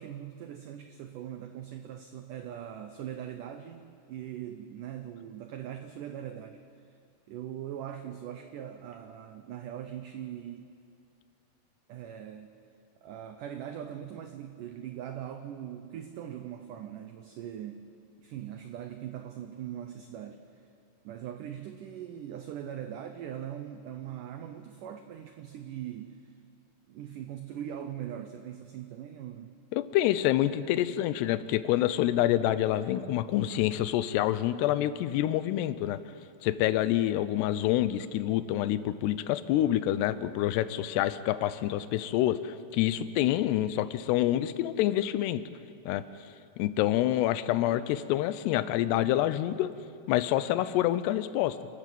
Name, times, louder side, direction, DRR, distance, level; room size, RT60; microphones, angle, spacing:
voice 1, 0.0-6.9 7.3-10.7 11.9-12.5 13.0-17.9 18.2-20.6 21.0-26.4 26.9-29.5, right 10 dB, 85° right, 7 dB, 1.8 m, -41 dB
voice 2, 29.7-36.0 36.4-45.4 45.9-46.1 46.6-49.7 50.1-51.6, left 13 dB, 85° left, 13 dB, 2.8 m, -27 dB
28.5 x 13.5 x 7.6 m, 2.5 s
omnidirectional pair, 4.8 m